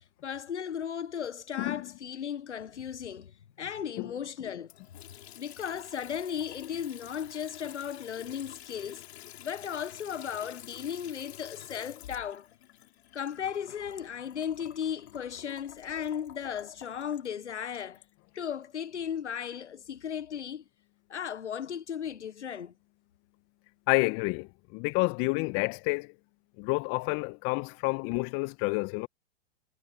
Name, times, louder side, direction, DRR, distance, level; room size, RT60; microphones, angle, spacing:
voice 1, 0.2-4.7 5.4-9.0 9.4-12.5 13.1-18.0 18.3-20.6 21.1-22.7, left 8 dB, 85° left, 1.1 m, -36 dB
voice 2, 1.6-1.9 4.0-4.1 23.9-26.1 26.6-29.1, left 29 dB, 40° left, 1.1 m, -29 dB
Water tap faucet / Sink (filling or washing) / Trickle dribble, 4.6-18.7, left 13 dB, 65° left, 4.0 m, -49 dB
hypercardioid pair, 105°, 34 cm